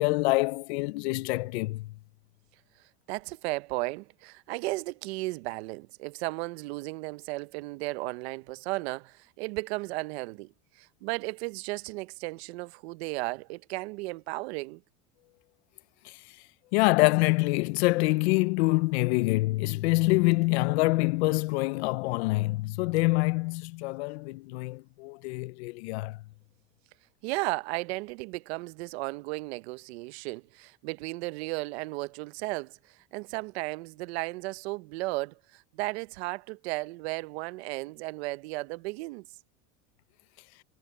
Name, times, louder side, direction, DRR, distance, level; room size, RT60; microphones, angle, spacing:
voice 1, 0.0-1.9 16.7-26.2, left 23 dB, 80° left, 0.7 m, -26 dB
voice 2, 3.1-14.8 27.2-39.3, right 22 dB, 80° right, 0.8 m, -35 dB
supercardioid pair, 145°, 32 cm